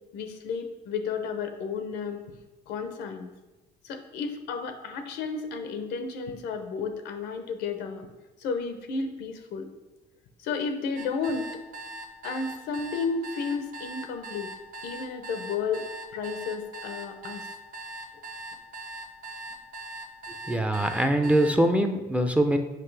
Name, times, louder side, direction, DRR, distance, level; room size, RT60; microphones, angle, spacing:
voice 1, 0.1-2.2 2.7-3.3 3.8-8.1 8.4-9.7 10.4-11.5 12.2-14.5 14.8-15.8 16.1-17.4, left 5 dB, 85° left, 7 dB, 0.8 m, -32 dB
sound 1, 11.0-21.6, right 2 dB, 55° right, 0.8 m, -40 dB
voice 2, 20.5-22.6, right 1 dB, 5° right, 6 dB, 0.5 m, -23 dB
7.6 x 5.2 x 3.3 m, 1.1 s
cardioid pair, 110°, 17 cm